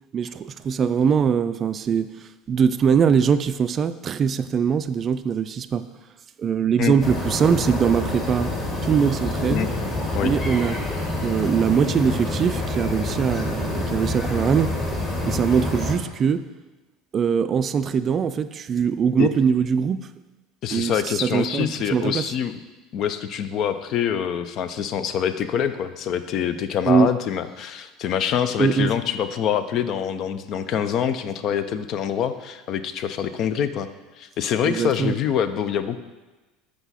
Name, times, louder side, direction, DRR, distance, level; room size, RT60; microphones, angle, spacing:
voice 1, 0.1-2.1 2.5-5.8 6.4-8.5 8.8-9.7 10.2-10.8 11.2-14.8 15.3-16.4 17.1-20.1 20.7-22.3 26.9-27.1 28.6-28.9 34.6-35.1, right 7 dB, 35° right, 13 dB, 0.3 m, -22 dB
sound 1, 7.0-16.0, left 2 dB, 30° left, 1.8 m, -27 dB
voice 2, 20.6-22.6 22.9-33.9 34.2-36.0, left 8 dB, 50° left, 11 dB, 0.5 m, -25 dB
7.8 x 4.8 x 4.1 m, 1.1 s
figure-of-eight pair, 70°, 0 cm